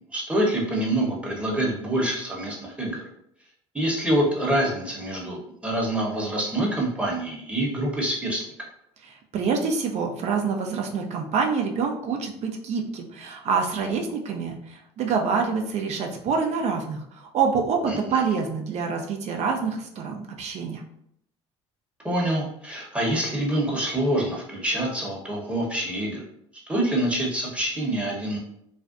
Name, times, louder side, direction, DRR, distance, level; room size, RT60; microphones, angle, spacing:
voice 1, 0.1-3.0 3.7-8.4 17.9-18.2 22.0-26.2 26.7-28.4, right 1 dB, 10° right, -3 dB, 0.9 m, -26 dB
voice 2, 9.3-20.8, right 5 dB, 50° right, 3 dB, 0.5 m, -26 dB
2.5 x 2.1 x 2.5 m, 0.73 s
hypercardioid pair, 70°, 15 cm